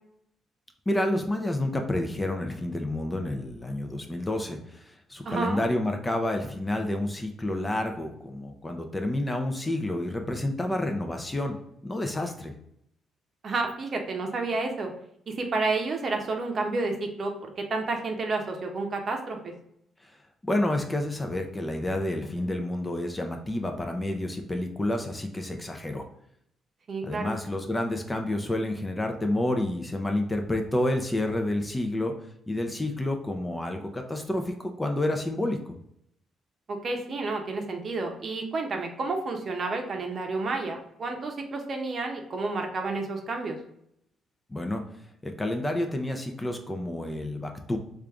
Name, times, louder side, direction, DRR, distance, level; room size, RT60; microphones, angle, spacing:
voice 1, 0.9-4.8 5.1-11.6 11.8-12.5 20.5-26.0 27.0-32.1 32.5-35.8 44.5-44.8 45.2-47.8, left 1 dB, 15° left, 4 dB, 0.5 m, -29 dB
voice 2, 5.2-5.8 13.4-14.9 15.3-19.5 26.9-27.4 36.7-43.6, right 3 dB, 50° right, 3 dB, 0.7 m, -30 dB
3.3 x 2.5 x 3.4 m, 0.74 s
cardioid pair, 90°, 0 cm